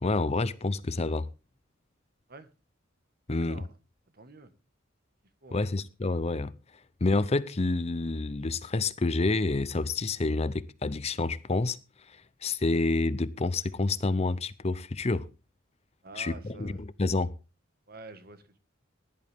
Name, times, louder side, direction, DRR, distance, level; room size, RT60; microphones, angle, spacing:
voice 1, 0.0-1.3 3.3-3.6 5.5-6.5 7.0-11.8 12.1-15.3 16.2-17.3, left 3 dB, 30° left, 0.6 m, -28 dB
voice 2, 3.3-3.7 4.1-4.5 5.4-5.7 16.0-16.8 17.9-18.6, right 2 dB, 50° right, 1.6 m, -47 dB
15.5 x 11.0 x 3.5 m
head